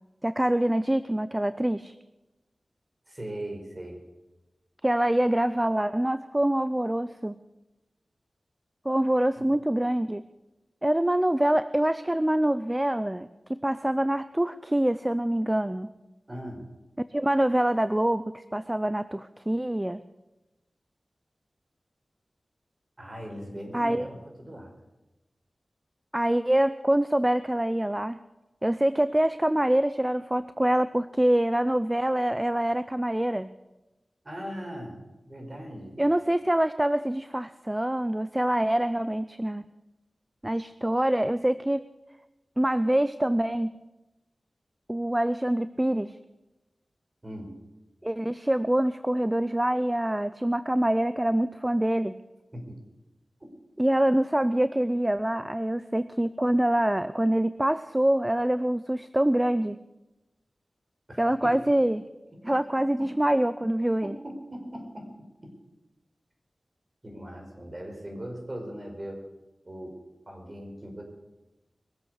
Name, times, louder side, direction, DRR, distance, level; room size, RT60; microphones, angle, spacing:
voice 1, 0.2-1.9 4.8-7.4 8.8-10.2 10.8-15.9 17.1-20.0 23.7-24.1 26.1-28.2 28.6-33.5 36.0-39.6 40.4-41.8 42.6-43.8 44.9-46.2 48.0-52.2 53.8-59.8 61.2-62.0 62.4-64.1, right 1 dB, 15° right, 14 dB, 0.5 m, -25 dB
voice 2, 3.1-4.0 9.4-9.5 16.3-16.6 23.0-24.7 34.2-35.0 35.3-36.0 47.2-47.5 52.5-52.7 61.1-61.7 62.4-62.5 64.0-65.1 65.4-65.5 67.0-69.3 69.6-71.0, equal, 35° right, 2 dB, 5.0 m, -39 dB
21.5 x 8.2 x 6.6 m, 1.0 s
cardioid pair, 45°, 0 cm